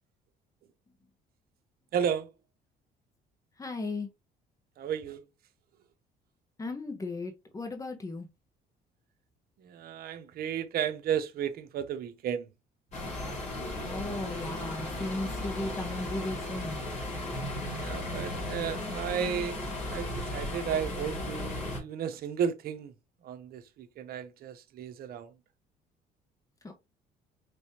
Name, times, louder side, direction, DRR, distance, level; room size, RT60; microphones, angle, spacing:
voice 1, 1.9-2.3 4.8-5.2 9.6-12.5 17.8-19.6 19.9-22.9 23.2-25.3, right 8 dB, 65° right, 0.9 m, -33 dB
voice 2, 3.6-4.1 6.6-8.3 13.8-16.8 26.6-26.7, left 2 dB, 20° left, 1.2 m, -36 dB
sound 1, 12.9-21.8, left 1 dB, 40° left, 3.2 m, -36 dB
5.2 x 3.3 x 2.9 m
cardioid pair, 110°, 17 cm